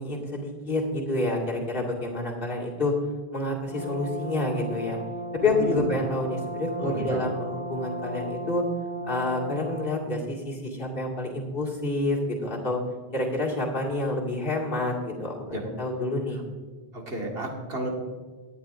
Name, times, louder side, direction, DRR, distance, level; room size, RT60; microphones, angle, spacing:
voice 1, 0.0-2.9 3.3-5.0 5.3-8.6 9.1-12.8 13.1-16.4, left 2 dB, 60° left, -3 dB, 2.3 m, -28 dB
Brass instrument, 3.7-9.9, right 1 dB, 30° left, 1.8 m, -35 dB
voice 2, 5.4-5.9 6.8-7.2 15.5-15.6 16.9-17.9, right 1 dB, 70° right, -1 dB, 2.1 m, -32 dB
17.5 x 9.9 x 2.6 m, 1.4 s
omnidirectional pair, 1.0 m